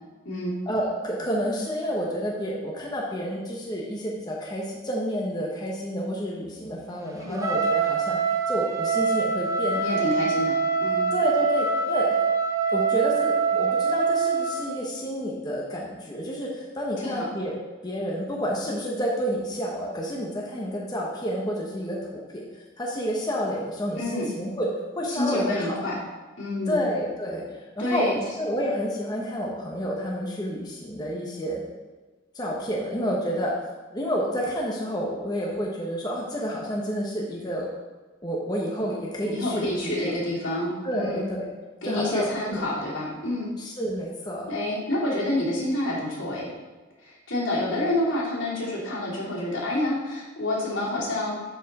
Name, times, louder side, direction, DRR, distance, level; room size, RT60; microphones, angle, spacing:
voice 1, 0.7-10.0 11.1-12.1 12.7-17.5 17.8-24.7 25.0-25.8 26.7-31.6 32.3-33.5 33.9-37.7 38.2-39.9 40.8-41.5 41.8-42.6 43.6-44.4, equal, 20° left, -3 dB, 1.1 m, -29 dB
Trumpet, 7.3-14.7, right 5 dB, 15° right, 0.7 m, -24 dB
voice 2, 9.8-11.0 17.0-17.3 24.0-24.3 25.1-25.9 26.4-26.8 27.8-28.2 39.2-41.3 41.8-43.5 44.5-46.5 47.0-51.4, left 1 dB, 80° left, -6 dB, 3.0 m, -28 dB
11.5 x 4.6 x 4.2 m, 1.3 s
head